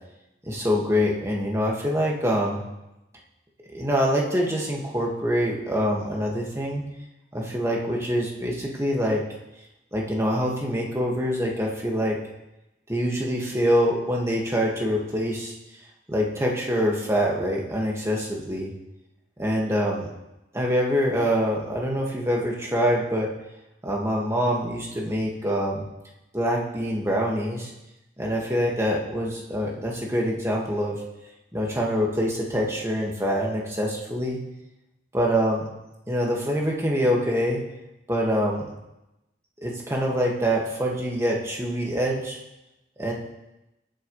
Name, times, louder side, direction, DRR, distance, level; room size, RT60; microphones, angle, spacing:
voice 1, 0.4-2.6 3.7-6.8 7.3-9.2 9.9-12.2 12.9-15.5 16.1-18.7 19.4-20.1 20.5-23.3 23.8-25.9 26.3-27.7 28.2-31.0 31.5-34.4 35.1-35.6 36.1-37.6 38.1-38.7 39.6-42.4 43.0-43.1, equal, 15° right, -2 dB, 2.0 m, -25 dB
22.0 x 9.4 x 3.3 m, 0.95 s
head